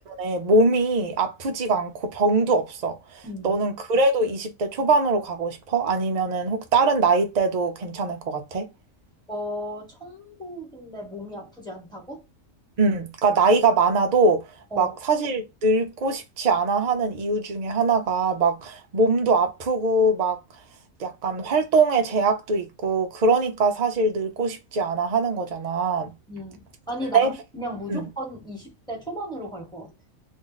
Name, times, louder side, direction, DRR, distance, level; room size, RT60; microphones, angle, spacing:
voice 1, 0.1-2.9 3.4-8.6 12.8-14.4 14.8-20.4 21.0-26.1 27.1-27.3 27.9-28.1, right 3 dB, 45° right, 0.6 m, -22 dB
voice 2, 3.2-3.6 9.3-12.2 14.7-14.9 26.3-29.9, equal, 5° left, 1.2 m, -35 dB
2.8 x 2.6 x 3.9 m
omnidirectional pair, 1.4 m